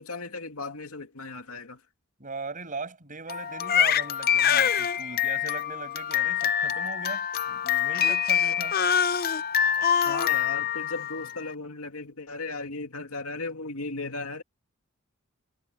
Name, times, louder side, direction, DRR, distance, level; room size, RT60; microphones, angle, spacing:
voice 1, 0.0-1.8 10.1-14.4, left 3 dB, 85° left, 2.4 m, -36 dB
voice 2, 2.2-8.8, right 3 dB, 40° right, 7.3 m, -39 dB
Crying sobbing, 3.3-11.5, left 8 dB, 45° left, 0.6 m, -25 dB
head